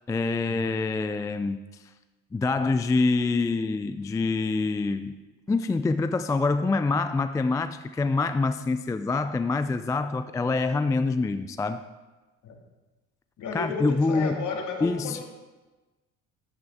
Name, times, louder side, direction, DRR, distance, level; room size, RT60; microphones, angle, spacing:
voice 1, 0.1-1.6 2.3-5.2 5.5-11.8 13.5-14.5 14.8-15.2, left 3 dB, 10° left, 11 dB, 0.3 m, -26 dB
voice 2, 13.4-15.2, left 4 dB, 55° left, 2 dB, 2.0 m, -33 dB
11.0 x 8.1 x 3.6 m, 1.2 s
hypercardioid pair, 65°, 37 cm